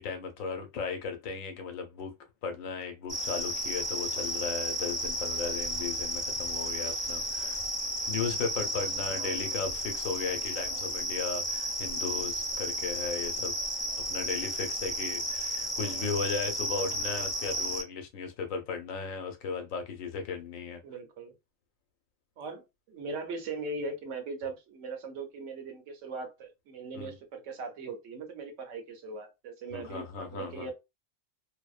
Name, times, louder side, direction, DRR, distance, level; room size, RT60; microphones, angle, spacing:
voice 1, 0.0-2.1 2.4-7.6 8.1-13.5 14.1-20.8 26.9-27.1 29.7-30.7, left 5 dB, 85° left, 1.1 m, -36 dB
sound 1, 3.1-17.8, equal, 35° left, 1.1 m, -33 dB
voice 2, 9.1-9.4 15.6-16.1 20.8-21.3 22.4-30.7, right 3 dB, 70° right, 1.0 m, -40 dB
2.6 x 2.1 x 2.3 m
omnidirectional pair, 1.3 m